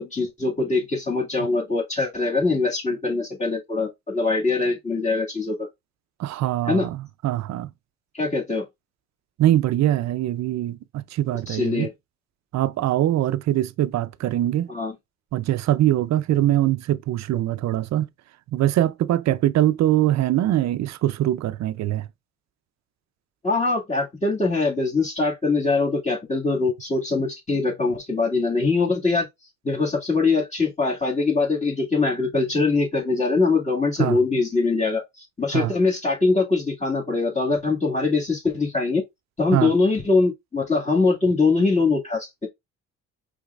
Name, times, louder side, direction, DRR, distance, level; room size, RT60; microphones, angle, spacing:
voice 1, 0.0-5.7 6.7-6.9 8.1-8.7 11.5-11.9 14.7-14.9 23.4-29.3 29.6-39.0 39.4-42.5, left 3 dB, 25° left, 2.0 m, -22 dB
voice 2, 6.2-7.7 9.4-11.9 12.5-14.7 15.3-18.1 18.5-22.1 34.0-34.2 35.5-35.7 39.5-39.7, right 13 dB, 65° right, 0.5 m, -22 dB
5.1 x 3.4 x 2.4 m
cardioid pair, 90°, 30 cm